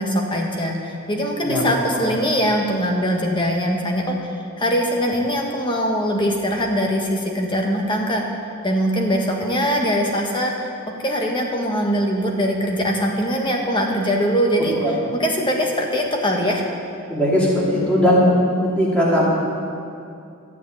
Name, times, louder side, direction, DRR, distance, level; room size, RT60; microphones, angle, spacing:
voice 1, 0.0-8.2 8.6-10.7 11.0-16.6, equal, 20° left, 1 dB, 1.4 m, -22 dB
voice 2, 17.1-18.2 18.6-19.2, equal, 5° left, -7 dB, 2.6 m, -18 dB
13.0 x 6.4 x 9.2 m, 2.5 s
head